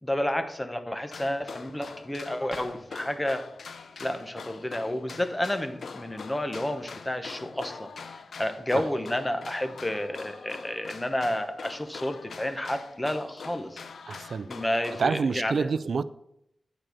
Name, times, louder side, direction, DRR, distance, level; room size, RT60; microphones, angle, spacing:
voice 1, 0.0-3.4 4.0-13.8 14.5-15.7, left 1 dB, 20° left, 8 dB, 1.1 m, -31 dB
sound 1, 1.1-15.1, left 5 dB, 90° left, 0.5 m, -44 dB
voice 2, 14.1-16.0, right 5 dB, 85° right, 15 dB, 0.4 m, -28 dB
8.9 x 4.1 x 6.7 m, 0.78 s
cardioid pair, 55°, 0 cm